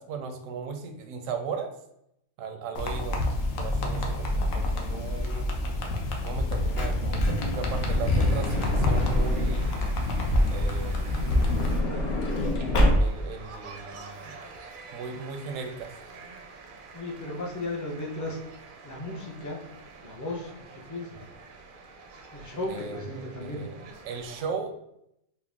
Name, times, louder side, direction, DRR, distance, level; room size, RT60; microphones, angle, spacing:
voice 1, 0.0-1.7 2.4-3.2 3.6-5.5 6.2-9.8 10.5-11.1 12.4-12.7 13.0-14.4 14.9-15.9 22.7-24.7, right 5 dB, 85° right, 5 dB, 1.0 m, -37 dB
sound 1, 2.7-11.8, left 1 dB, 80° left, 1.1 m, -27 dB
Truck / Door, 6.3-9.9 10.9-13.4 14.1-14.2 14.4-14.6, left 1 dB, 60° left, 0.8 m, -27 dB
sound 2, 7.2-24.4, right 4 dB, 60° right, 0.6 m, -47 dB
voice 2, 16.9-18.4 18.8-19.6 20.0-21.2 22.3-23.6, left 2 dB, 20° left, -2 dB, 0.5 m, -35 dB
4.4 x 2.0 x 3.5 m, 0.78 s
omnidirectional pair, 1.3 m